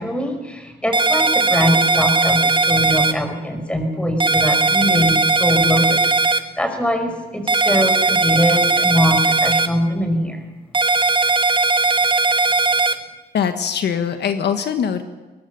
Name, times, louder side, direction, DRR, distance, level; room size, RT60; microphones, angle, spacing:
voice 1, 0.0-10.5, equal, 5° left, 5 dB, 5.3 m, -22 dB
sound 1, 0.9-3.1 4.2-6.4 7.5-9.7 10.7-12.9, right 3 dB, 30° right, 1.5 m, -17 dB
voice 2, 13.3-15.0, left 7 dB, 70° left, 8 dB, 1.5 m, -22 dB
23.0 x 20.0 x 7.0 m, 1.3 s
cardioid pair, 95°, 18 cm